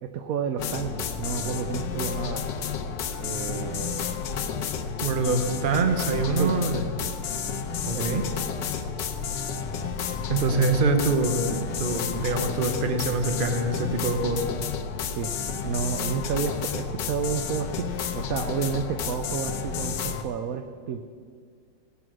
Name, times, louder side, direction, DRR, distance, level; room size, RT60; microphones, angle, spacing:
voice 1, 0.0-2.4 3.2-4.2 6.4-6.5 7.9-8.2 15.2-15.3 15.6-17.9 18.1-21.0, right 7 dB, 70° right, 7 dB, 0.8 m, -31 dB
sound 1, 0.6-20.2, left 6 dB, 75° left, 1.4 m, -31 dB
voice 2, 5.0-6.8 7.9-8.2 10.3-14.5, right 3 dB, 40° right, 6 dB, 0.8 m, -25 dB
17.5 x 6.2 x 6.1 m, 2.1 s
omnidirectional pair, 2.0 m